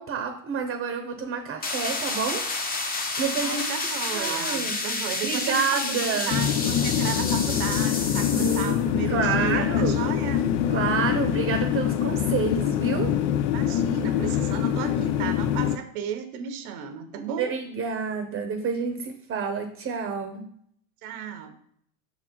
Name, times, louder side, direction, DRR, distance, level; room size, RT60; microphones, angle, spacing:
voice 1, 0.0-2.4 3.2-3.7 4.1-4.8 5.2-6.4 8.4-10.0 10.7-13.1 17.2-20.4, right 6 dB, 30° right, 6 dB, 0.8 m, -29 dB
sound 1, 1.6-8.8, left 3 dB, 20° left, 0.8 m, -30 dB
voice 2, 3.4-10.4 13.5-17.5 21.0-21.5, right 8 dB, 85° right, 7 dB, 1.2 m, -34 dB
sound 2, 6.3-15.8, left 10 dB, 65° left, 0.6 m, -25 dB
6.1 x 4.1 x 4.5 m, 0.66 s
supercardioid pair, 120°, 44 cm